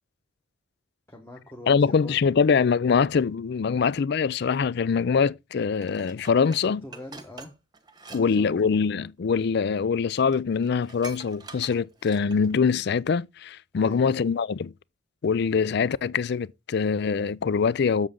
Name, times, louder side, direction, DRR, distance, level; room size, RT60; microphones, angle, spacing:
voice 1, 1.1-2.2 6.6-7.5 8.1-8.5 13.7-14.1, left 1 dB, 15° left, 1.4 m, -43 dB
voice 2, 1.7-6.8 8.1-14.7 15.2-18.1, left 5 dB, 55° left, 0.4 m, -23 dB
Dishes pots and pans, 5.8-8.2 8.5-8.8 9.6-9.7 10.0-10.1 10.3-12.5 13.0-13.1, right 3 dB, 20° right, 1.1 m, -45 dB
8.1 x 7.0 x 3.8 m
head